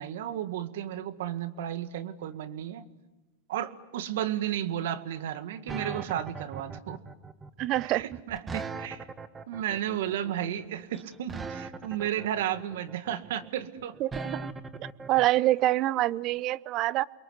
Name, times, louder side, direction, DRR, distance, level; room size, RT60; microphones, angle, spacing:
voice 1, 0.0-2.9 3.5-7.0 7.8-9.1 9.5-14.0, right 11 dB, 70° right, 10 dB, 2.0 m, -33 dB
sound 1, 5.7-15.3, right 4 dB, 20° right, 1.4 m, -39 dB
voice 2, 7.6-8.0 14.0-14.5 15.1-17.0, right 16 dB, 45° right, 19 dB, 0.8 m, -26 dB
30.0 x 22.5 x 8.1 m, 1.1 s
hypercardioid pair, 110°, 0 cm